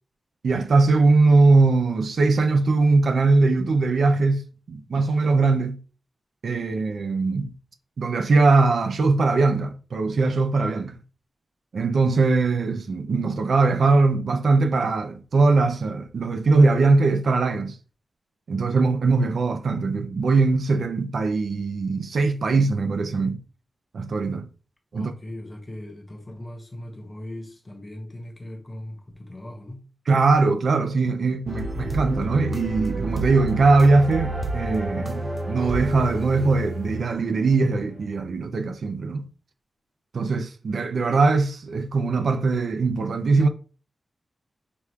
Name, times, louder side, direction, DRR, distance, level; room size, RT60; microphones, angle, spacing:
voice 1, 0.4-5.8 6.4-7.5 8.0-11.0 11.7-17.8 18.5-23.4 23.9-24.5 24.9-25.1 30.1-39.3 40.1-43.5, right 3 dB, 65° right, 0.5 m, -21 dB
voice 2, 24.9-29.9, left 1 dB, 20° left, 0.9 m, -39 dB
sound 1, 31.5-37.5, right 1 dB, 25° right, 0.8 m, -30 dB
6.0 x 2.4 x 3.3 m
wide cardioid pair, 160°, 0 cm